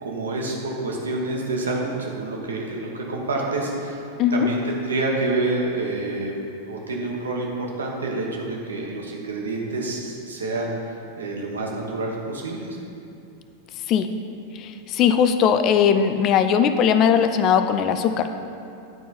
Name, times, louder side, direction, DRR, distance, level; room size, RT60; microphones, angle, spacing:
voice 1, 0.0-4.0 4.3-12.8, right 2 dB, 70° right, -1 dB, 1.3 m, -28 dB
voice 2, 14.6-18.3, left 8 dB, 35° left, 9 dB, 0.4 m, -19 dB
10.5 x 4.6 x 4.3 m, 2.7 s
figure-of-eight pair, 90°, 0 cm